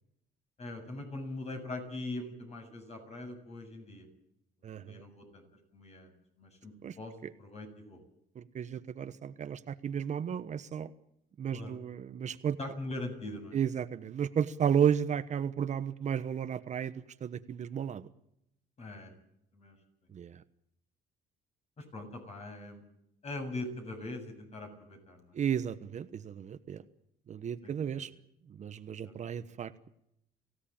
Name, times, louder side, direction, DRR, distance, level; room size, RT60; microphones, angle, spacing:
voice 1, 0.6-4.1 4.8-5.4 5.7-7.1 7.4-8.0 11.5-11.8 12.6-13.6 18.8-19.1 19.5-19.8 21.8-22.8 23.2-25.4 27.6-28.1 29.0-29.4, left 2 dB, 40° left, 5 dB, 7.5 m, -42 dB
voice 2, 4.6-5.0 6.8-7.0 8.3-10.9 11.4-12.6 13.5-18.1 20.1-20.4 25.3-26.8 27.3-28.1 28.6-29.9, right 8 dB, 45° right, 11 dB, 1.2 m, -33 dB
24.5 x 16.5 x 8.8 m, 0.79 s
cardioid pair, 110°, 17 cm